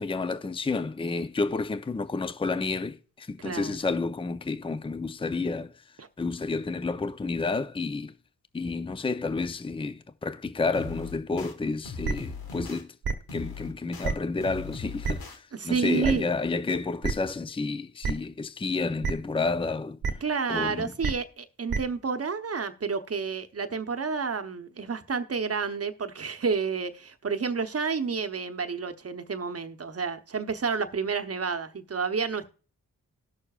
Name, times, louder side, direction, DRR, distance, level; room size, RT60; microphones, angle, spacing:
voice 1, 0.0-5.7 6.2-8.1 8.5-12.9 13.3-20.0 20.5-20.9, left 3 dB, 15° left, 0.5 m, -30 dB
voice 2, 3.4-3.8 6.0-6.1 15.5-16.3 20.2-32.5, right 5 dB, 40° right, 0.9 m, -30 dB
sound 1, 10.7-11.5 11.8-12.8 13.3-14.1 14.4-15.4, left 4 dB, 80° left, 1.3 m, -39 dB
sound 2, 12.0-12.1 13.0-13.1 14.0-14.1 15.0-15.1 16.0-16.1 17.0-17.1 18.0-18.1 19.0-19.1 20.0-20.1 21.0-21.1 21.7-21.8, right 5 dB, 80° right, 1.0 m, -26 dB
18.0 x 6.5 x 2.4 m
cardioid pair, 45°, 36 cm